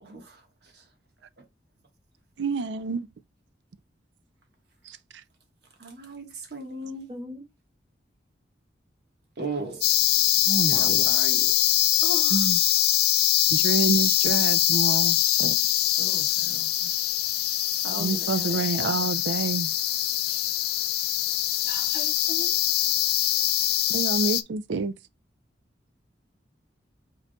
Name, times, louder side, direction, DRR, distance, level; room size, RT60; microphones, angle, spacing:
voice 1, 0.0-0.8 5.8-7.1 9.4-9.9 10.7-11.5 12.0-12.5 16.0-16.9 17.8-19.1, right 2 dB, 60° right, 1.4 m, -38 dB
voice 2, 2.4-3.1 4.9-5.0 10.5-11.1 12.3-12.6 13.5-15.6 18.0-19.7 23.9-24.9, right 4 dB, 75° right, 0.5 m, -28 dB
voice 3, 7.1-7.4 21.6-22.5, right 1 dB, 30° right, 1.8 m, -39 dB
sound 1, 9.8-24.4, left 14 dB, 55° left, 0.3 m, -23 dB
5.3 x 4.0 x 2.2 m
head